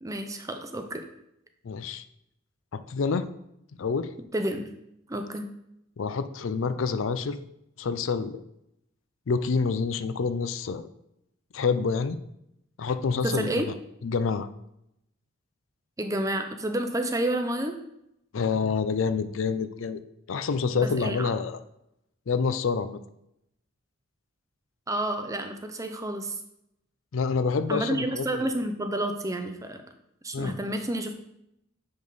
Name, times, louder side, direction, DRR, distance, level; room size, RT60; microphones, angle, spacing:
voice 1, 0.0-1.0 4.3-4.6 5.1-5.5 13.2-13.7 16.0-17.8 20.8-21.3 24.9-26.3 27.7-29.8 30.2-31.1, right 1 dB, 15° right, 6 dB, 0.6 m, -30 dB
voice 2, 1.6-2.0 2.7-3.3 3.8-4.1 6.0-7.4 7.8-8.4 9.3-10.9 11.5-12.2 12.8-13.6 14.0-14.5 18.3-20.0 20.3-21.6 22.3-23.0 27.1-28.5 30.3-30.6, left 5 dB, 75° left, 12 dB, 0.5 m, -27 dB
6.9 x 5.3 x 4.0 m, 0.81 s
head